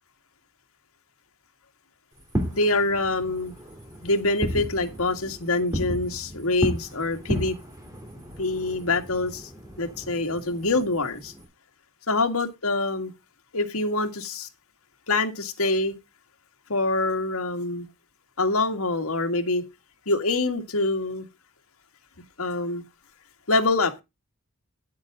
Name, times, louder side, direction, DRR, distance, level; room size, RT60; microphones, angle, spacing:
Fireworks, 2.2-11.4, equal, 15° right, 2.9 m, -34 dB
voice 1, 2.5-3.6 4.0-7.6 8.4-9.5 9.8-11.3 12.1-13.1 13.5-14.5 15.1-16.0 16.7-17.9 18.4-19.6 20.1-21.3 22.4-22.8 23.5-23.9, left 2 dB, 75° left, 1.9 m, -25 dB
9.9 x 9.6 x 3.6 m
head